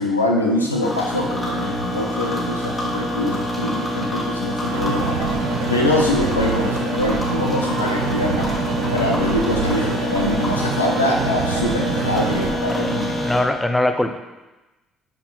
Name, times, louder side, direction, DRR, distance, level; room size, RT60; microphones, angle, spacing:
voice 1, 0.0-5.2 5.7-8.5 8.9-13.1, left 1 dB, 85° left, 1 dB, 0.9 m, -23 dB
sound 1, 0.8-13.4, equal, 30° left, 2.8 m, -26 dB
sound 2, 4.7-12.5, right 5 dB, 70° right, 1.0 m, -26 dB
voice 2, 12.7-14.2, left 1 dB, 10° left, 7 dB, 0.9 m, -22 dB
9.7 x 5.9 x 4.1 m, 1.1 s
figure-of-eight pair, 50°, 0 cm